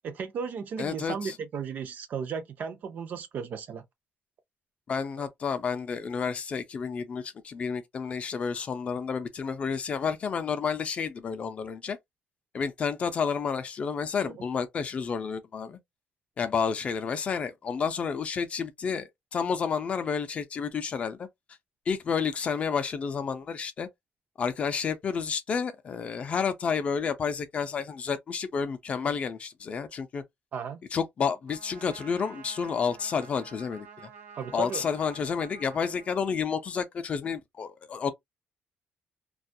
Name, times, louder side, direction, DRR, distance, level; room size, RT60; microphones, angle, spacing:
voice 1, 0.0-3.8 5.2-5.3 14.2-14.4 30.5-30.8 34.3-34.8, right 6 dB, 50° right, 0.5 m, -35 dB
voice 2, 0.8-1.4 4.9-12.0 12.5-15.8 16.4-21.3 21.9-23.9 24.4-30.2 30.9-33.9 34.5-38.1, left 6 dB, 35° left, 0.4 m, -30 dB
Trumpet, 31.5-36.7, right 7 dB, 80° right, 0.8 m, -50 dB
2.3 x 2.1 x 2.6 m
cardioid pair, 180°, 4 cm